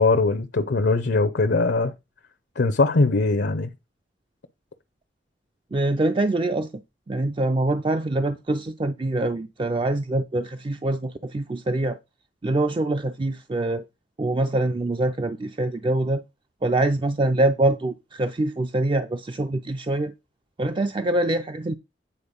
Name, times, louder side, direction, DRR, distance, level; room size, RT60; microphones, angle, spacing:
voice 1, 0.0-1.9 2.6-3.7, left 3 dB, 75° left, 0.6 m, -21 dB
voice 2, 5.7-6.7 7.1-12.0 12.4-13.8 14.2-16.2 16.6-20.1 20.6-21.7, right 2 dB, 25° right, 0.4 m, -24 dB
8.7 x 4.3 x 5.1 m
head